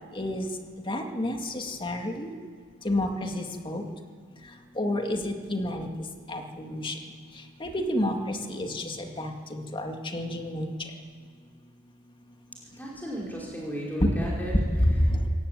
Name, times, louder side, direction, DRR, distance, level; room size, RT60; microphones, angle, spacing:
voice 1, 0.1-0.5 0.9-2.3 2.8-3.8 4.8-5.9 6.3-7.0 7.6-10.7 14.0-14.1 14.8-15.3, left 1 dB, 25° left, 3 dB, 2.1 m, -29 dB
voice 2, 12.6-15.3, equal, 10° left, -4 dB, 5.3 m, -36 dB
23.5 x 19.0 x 9.4 m, 2.1 s
head